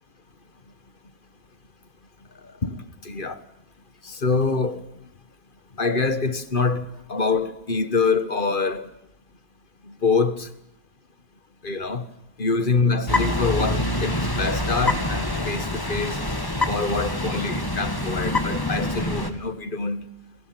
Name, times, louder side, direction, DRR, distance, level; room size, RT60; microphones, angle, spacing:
voice 1, 2.6-3.4 4.0-4.8 5.8-8.9 9.9-10.5 11.6-12.1 12.4-16.2 16.7-20.0, left 4 dB, 45° left, 1.6 m, -25 dB
sound 1, 12.5-19.0, left 5 dB, 90° left, 4.0 m, -45 dB
sound 2, 13.1-19.3, left 1 dB, 20° left, 2.2 m, -26 dB
29.5 x 22.0 x 9.0 m
omnidirectional pair, 1.2 m